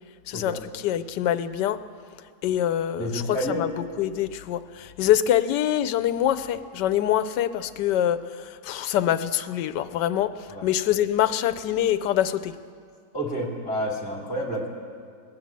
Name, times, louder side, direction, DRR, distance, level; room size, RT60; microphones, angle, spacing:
voice 1, 0.3-1.8 2.4-12.6, left 11 dB, 80° left, 13 dB, 1.2 m, -25 dB
voice 2, 3.0-3.7 10.5-10.7 13.1-14.7, equal, 5° left, -3 dB, 2.4 m, -29 dB
19.0 x 9.3 x 7.4 m, 2.1 s
omnidirectional pair, 1.9 m